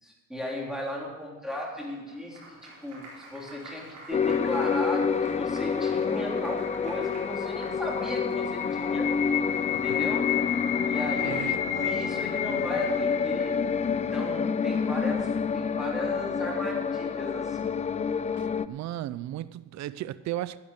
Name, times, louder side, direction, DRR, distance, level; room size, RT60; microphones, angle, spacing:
voice 1, 0.0-9.1 9.7-10.3 10.8-13.5 13.9-17.8, left 1 dB, ahead, 3.6 m, -36 dB
Applause, 1.8-10.5, right 2 dB, 85° right, 4.3 m, -48 dB
sound 1, 4.1-18.7, left 6 dB, 25° left, 0.4 m, -28 dB
sound 2, 5.9-14.9, left 11 dB, 90° left, 1.0 m, -33 dB
voice 2, 11.2-11.6 18.4-20.6, right 13 dB, 65° right, 0.5 m, -35 dB
11.5 x 8.7 x 6.5 m
cardioid pair, 90°, 30 cm